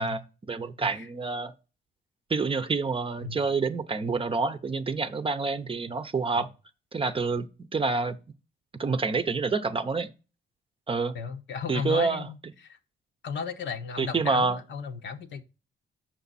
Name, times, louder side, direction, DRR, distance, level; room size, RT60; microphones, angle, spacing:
voice 1, 0.0-1.5 2.3-6.5 6.9-7.5 7.7-8.2 8.8-10.1 10.9-11.2 11.7-12.3 14.0-14.6, right 4 dB, 25° right, 0.7 m, -27 dB
voice 2, 11.1-12.8 13.2-15.4, left 6 dB, 65° left, 1.0 m, -35 dB
7.8 x 5.8 x 4.1 m
cardioid pair, 90°, 20 cm